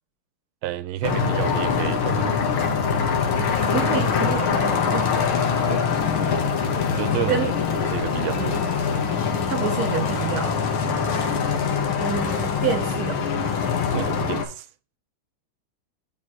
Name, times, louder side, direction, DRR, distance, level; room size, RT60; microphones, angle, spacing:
voice 1, 0.6-2.4 5.7-5.8 6.9-7.5 7.8-8.4 13.9-14.7, right 14 dB, 80° right, 1.4 m, -30 dB
sound 1, 1.0-14.4, left 6 dB, 90° left, 2.0 m, -23 dB
voice 2, 3.6-5.2 7.3-7.5 8.4-8.6 9.4-10.6 12.0-13.2, right 7 dB, 60° right, 1.0 m, -28 dB
8.9 x 3.7 x 4.1 m
omnidirectional pair, 2.2 m